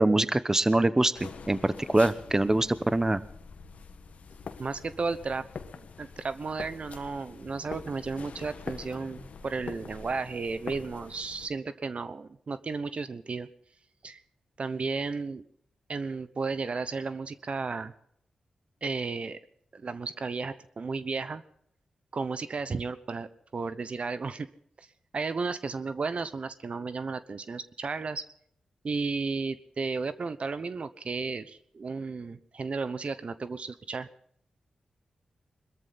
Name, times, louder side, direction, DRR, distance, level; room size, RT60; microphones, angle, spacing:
voice 1, 0.0-3.2, right 2 dB, 20° right, 15 dB, 1.0 m, -24 dB
sound 1, 1.2-11.5, left 5 dB, 70° left, 1.5 m, -44 dB
voice 2, 4.6-5.4 6.0-13.5 14.0-14.2 14.6-15.4 15.9-17.9 18.8-19.4 19.7-21.4 22.1-24.5 24.8-24.9 25.1-28.2 28.8-34.1, right 4 dB, 55° right, 13 dB, 1.0 m, -33 dB
22.0 x 13.5 x 4.1 m, 0.67 s
cardioid pair, 50°, 2 cm